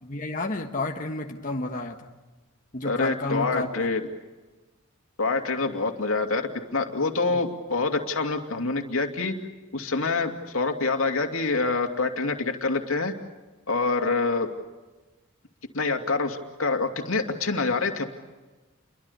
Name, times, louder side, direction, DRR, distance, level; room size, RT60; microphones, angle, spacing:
voice 1, 0.0-2.2 2.7-3.7 7.3-7.4, left 2 dB, 40° left, 2 dB, 1.4 m, -31 dB
voice 2, 2.8-4.0 5.2-9.3 9.7-13.1 13.7-14.5 15.7-18.0, left 3 dB, 80° left, 4 dB, 2.6 m, -26 dB
29.5 x 23.5 x 6.8 m, 1.2 s
head